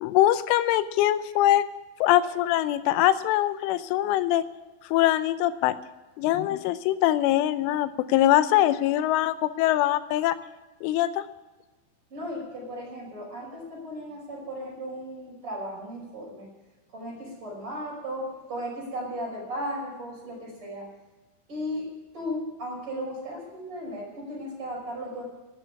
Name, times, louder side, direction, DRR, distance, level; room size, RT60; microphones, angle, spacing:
voice 1, 0.0-1.6 2.0-4.4 4.9-5.8 6.2-10.4 10.8-11.2, left 13 dB, 80° left, 13 dB, 3.1 m, -23 dB
voice 2, 12.1-16.5 16.9-20.9 21.5-21.9 22.1-25.2, equal, 25° right, -3 dB, 6.1 m, -35 dB
12.5 x 9.9 x 9.5 m, 1.2 s
omnidirectional pair, 5.8 m